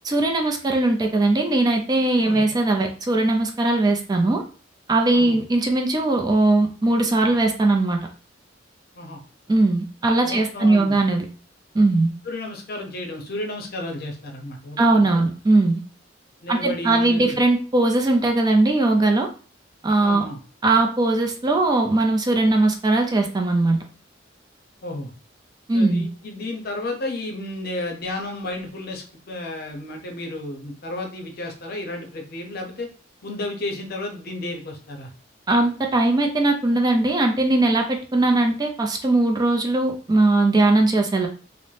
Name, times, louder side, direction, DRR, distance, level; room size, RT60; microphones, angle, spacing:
voice 1, 0.0-4.4 4.9-8.0 9.5-11.2 11.7-12.1 14.8-15.8 16.5-19.3 19.8-20.2 20.6-23.8 25.7-26.0 35.5-41.3, right 2 dB, 20° right, 4 dB, 0.3 m, -19 dB
voice 2, 2.2-2.5 5.1-5.4 8.9-9.2 10.2-11.0 12.2-15.3 16.4-17.4 20.0-20.4 24.8-25.1 25.7-32.9 33.2-35.1, left 1 dB, 55° left, 3 dB, 0.6 m, -32 dB
2.6 x 2.0 x 3.1 m, 0.38 s
head